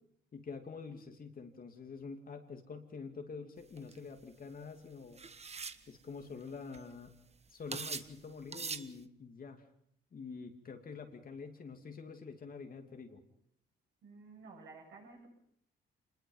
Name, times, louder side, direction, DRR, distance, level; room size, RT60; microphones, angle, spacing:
voice 1, 0.3-5.2 5.9-7.1 7.5-9.6 10.1-13.2, left 5 dB, 45° left, 5 dB, 2.7 m, -47 dB
sound 1, 3.8-4.0 5.2-5.8 6.5-6.6 6.7-7.1 7.7-8.1 8.5-8.9, right 5 dB, 30° right, 1.2 m, -41 dB
voice 2, 14.0-15.3, right 4 dB, 70° right, 0 dB, 7.9 m, -53 dB
26.0 x 21.0 x 5.6 m, 0.69 s
cardioid pair, 90°, 20 cm